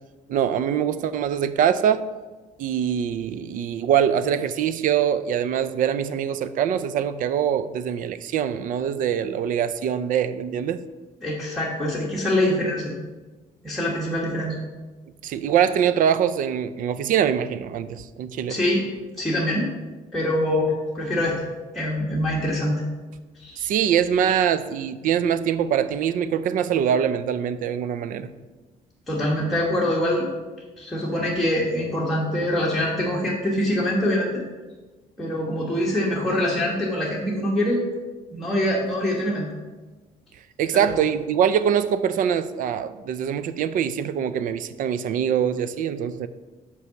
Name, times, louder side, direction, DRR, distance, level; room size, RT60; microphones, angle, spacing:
voice 1, 0.3-2.0 2.6-10.8 15.2-18.6 23.6-28.3 40.6-46.3, right 8 dB, 60° right, 13 dB, 0.5 m, -23 dB
voice 2, 11.2-12.9 13.6-14.6 18.5-18.8 19.2-19.7 20.1-21.4 21.7-22.8 23.4-23.7 29.1-30.3 30.8-34.4 35.2-37.8 38.3-39.5 40.7-41.0, left 1 dB, ahead, -6 dB, 1.2 m, -24 dB
5.6 x 4.7 x 6.3 m, 1.2 s
cardioid pair, 125°, 15 cm